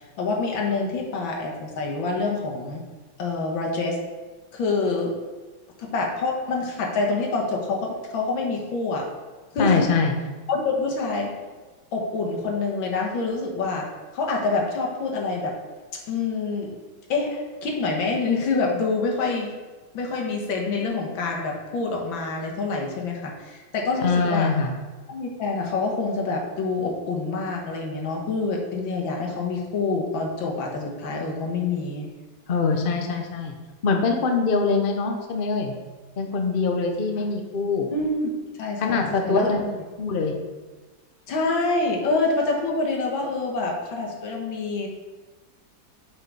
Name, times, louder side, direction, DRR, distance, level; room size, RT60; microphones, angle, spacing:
voice 1, 0.2-2.8 3.2-4.0 4.5-5.1 5.8-9.1 9.5-9.9 10.5-11.3 11.9-13.9 14.1-15.5 16.1-16.7 17.1-19.5 19.9-24.5 25.1-32.1 37.2-37.3 37.9-38.3 38.6-39.5 41.3-44.9, left 3 dB, 80° left, 0 dB, 2.1 m, -26 dB
voice 2, 9.6-10.1 24.0-24.7 32.5-33.5 33.8-35.7 36.2-37.9 38.8-39.6 40.0-40.3, left 4 dB, 50° left, 3 dB, 0.6 m, -23 dB
7.9 x 4.9 x 4.8 m, 1.3 s
omnidirectional pair, 2.1 m